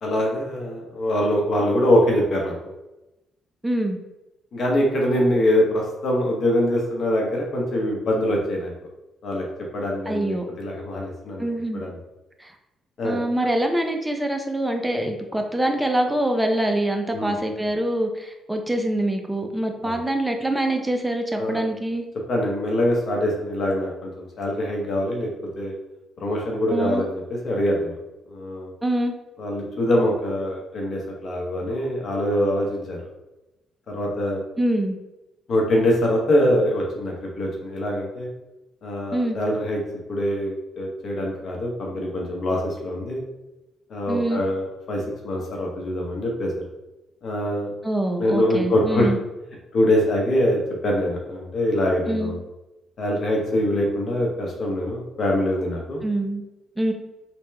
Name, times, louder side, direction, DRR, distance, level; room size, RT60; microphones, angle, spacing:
voice 1, 0.0-2.5 4.5-8.7 9.2-9.4 9.7-11.4 11.7-11.9 13.0-13.2 17.1-17.3 19.8-20.0 21.4-21.6 22.3-25.3 25.6-25.7 26.2-28.0 28.3-28.7 29.4-33.0 33.9-34.4 35.5-38.3 38.8-39.8 40.1-43.2 43.9-46.5 47.2-47.7 48.2-49.1 49.7-52.4 53.0-56.0, left 1 dB, 60° left, -1 dB, 0.9 m, -23 dB
voice 2, 3.6-4.0 10.1-10.4 11.4-11.8 12.4-12.5 13.0-22.1 26.7-27.1 28.8-29.1 34.6-35.0 39.1-39.4 44.1-44.4 47.8-49.2 52.1-52.3 56.0-56.4 56.8-56.9, right 1 dB, 10° right, 4 dB, 0.6 m, -24 dB
3.4 x 2.9 x 3.3 m, 0.99 s
cardioid pair, 90°, 0 cm